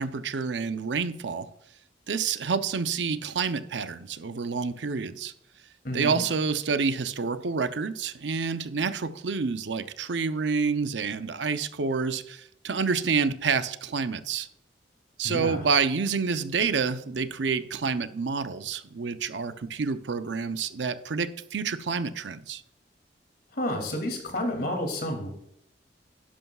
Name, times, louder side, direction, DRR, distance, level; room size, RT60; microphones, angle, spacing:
voice 1, 0.0-1.5 2.1-5.3 5.9-14.5 15.2-22.6, right 5 dB, 80° right, 0.6 m, -28 dB
voice 2, 5.8-6.2 15.2-15.6 23.5-25.3, left 1 dB, 60° left, 2.6 m, -30 dB
11.5 x 11.0 x 2.4 m
head